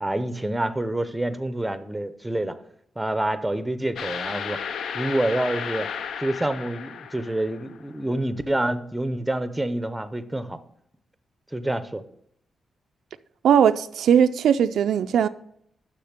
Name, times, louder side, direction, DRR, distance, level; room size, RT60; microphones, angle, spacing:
voice 1, 0.0-2.6 3.0-4.6 4.9-5.9 6.2-10.6 11.5-12.0, right 1 dB, 10° right, 0.5 m, -27 dB
sound 1, 4.0-7.8, left 7 dB, 75° left, 0.5 m, -33 dB
voice 2, 13.4-15.3, right 8 dB, 90° right, 0.3 m, -19 dB
6.8 x 6.5 x 6.5 m
wide cardioid pair, 145°, 0 cm